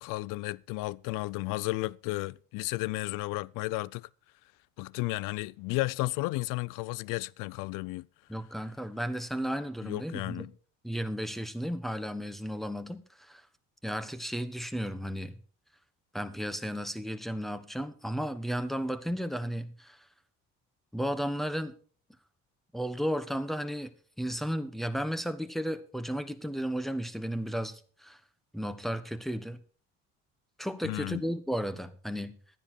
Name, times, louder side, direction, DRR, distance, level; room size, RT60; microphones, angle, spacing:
voice 1, 0.0-4.1 4.8-8.1 9.8-10.5 30.8-31.2, left 21 dB, 80° left, 0.5 m, -33 dB
voice 2, 8.3-10.5 10.8-13.4 13.8-15.3 16.1-20.0 20.9-21.7 22.7-23.9 24.2-28.2 28.5-29.6 30.6-32.3, equal, ahead, 1.3 m, -34 dB
12.5 x 9.9 x 4.5 m
supercardioid pair, 80°, 32 cm